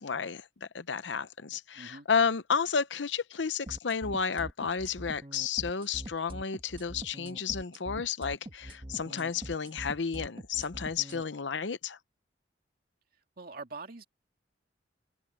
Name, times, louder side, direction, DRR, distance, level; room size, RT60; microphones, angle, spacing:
voice 1, 0.0-12.0, left 6 dB, 80° left, 0.8 m, -32 dB
voice 2, 1.7-2.1 13.4-14.0, right 3 dB, 55° right, 2.3 m, -43 dB
sound 1, 3.7-11.2, right 1 dB, 30° right, 1.6 m, -43 dB
head